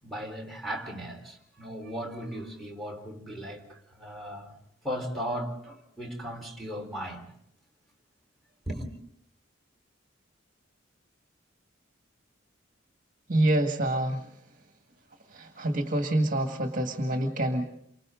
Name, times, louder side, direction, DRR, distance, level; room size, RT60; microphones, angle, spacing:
voice 1, 0.0-4.5 4.8-7.3 8.7-8.9, equal, ahead, 4.3 m, -37 dB
voice 2, 13.3-14.2 15.4-17.7, right 1 dB, 40° right, 2.0 m, -26 dB
29.0 x 25.5 x 3.9 m
head